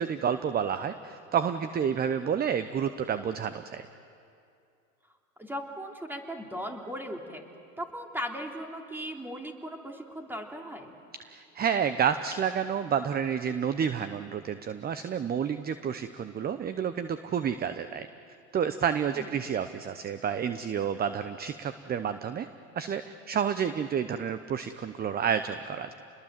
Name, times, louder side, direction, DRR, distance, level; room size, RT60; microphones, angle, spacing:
voice 1, 0.0-3.9 11.3-18.1 18.5-22.5 22.8-25.9, right 8 dB, 20° right, 11 dB, 0.8 m, -30 dB
voice 2, 5.4-7.4 7.8-10.9 19.1-19.5, equal, 5° right, 2 dB, 2.9 m, -38 dB
29.5 x 21.5 x 7.6 m, 2.5 s
hypercardioid pair, 95°, 42 cm